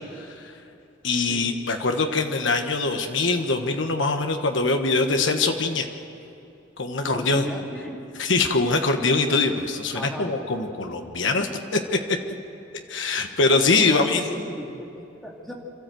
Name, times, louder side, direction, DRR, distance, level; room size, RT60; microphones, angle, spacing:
voice 1, 1.0-5.9 6.8-7.4 8.2-11.8 12.9-14.2, left 3 dB, 80° left, 5 dB, 1.4 m, -23 dB
voice 2, 7.0-8.0 9.9-10.3 13.8-15.5, equal, ahead, -2 dB, 2.7 m, -35 dB
28.0 x 13.0 x 7.9 m, 2.7 s
head